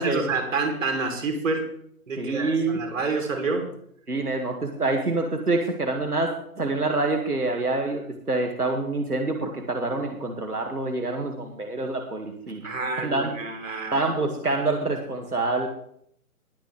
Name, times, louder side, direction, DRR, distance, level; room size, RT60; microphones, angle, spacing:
voice 1, 0.0-1.7 2.1-3.7 12.6-14.0, right 3 dB, 60° right, 3 dB, 3.6 m, -28 dB
voice 2, 2.2-2.8 4.1-6.3 6.6-12.7 13.0-13.3 13.9-15.7, right 2 dB, 85° right, 3 dB, 2.2 m, -26 dB
20.5 x 9.1 x 3.4 m, 0.66 s
figure-of-eight pair, 145°, 44 cm